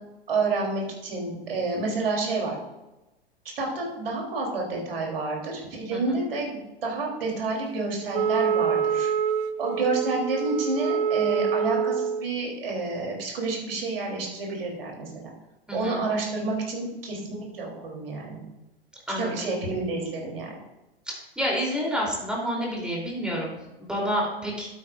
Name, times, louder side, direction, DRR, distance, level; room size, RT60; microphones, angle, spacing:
voice 1, 0.3-2.6 3.6-9.1 9.6-15.3 15.7-18.4 19.2-20.5, right 3 dB, 65° right, -1 dB, 3.2 m, -29 dB
Wind instrument woodwind instrument, 8.1-12.3, right 7 dB, 50° right, 0.6 m, -26 dB
voice 2, 15.7-16.1 19.1-19.3 21.1-24.7, equal, 5° right, -3 dB, 3.0 m, -29 dB
12.0 x 8.8 x 2.5 m, 1.0 s
figure-of-eight pair, 95°, 30 cm